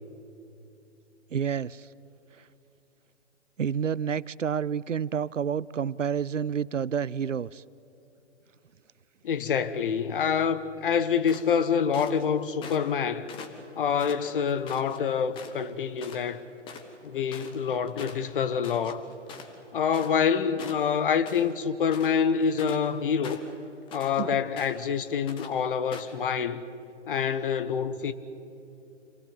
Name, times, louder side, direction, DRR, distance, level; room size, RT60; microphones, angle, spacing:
voice 1, 1.3-1.9 3.6-7.6 24.2-24.4, right 7 dB, 85° right, 0.6 m, -29 dB
voice 2, 9.2-13.3 13.7-16.4 17.0-19.0 19.7-23.4 23.9-26.6 27.1-28.1, left 7 dB, 45° left, 1.2 m, -26 dB
sound 1, 11.3-12.2 12.6-13.0 13.3-15.0 15.3-15.7 16.0-16.2 16.5-20.3 20.6-21.5 21.8-22.9 23.2-24.2 24.6-24.9 25.3-25.5 25.9-26.2, left 5 dB, 15° left, 1.2 m, -44 dB
27.0 x 19.0 x 8.1 m
figure-of-eight pair, 135°, 37 cm